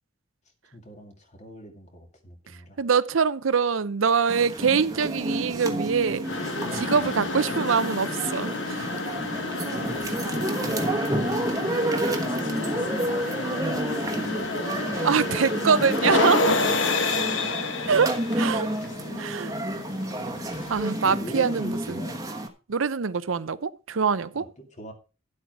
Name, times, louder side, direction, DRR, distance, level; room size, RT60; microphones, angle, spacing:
voice 1, 0.7-2.8 6.9-7.1 8.1-8.2 10.3-14.9 19.1-19.2 21.0-22.2 24.3-24.9, left 1 dB, 35° left, 2.2 m, -41 dB
voice 2, 2.8-8.9 15.0-16.6 17.8-18.7 19.2-19.5 20.7-22.0 22.7-24.5, right 5 dB, 85° right, 0.6 m, -24 dB
sound 1, 4.3-22.5, right 1 dB, 15° right, 1.2 m, -30 dB
sound 2, 6.2-21.2, left 3 dB, 70° left, 1.3 m, -30 dB
11.0 x 8.0 x 4.7 m
head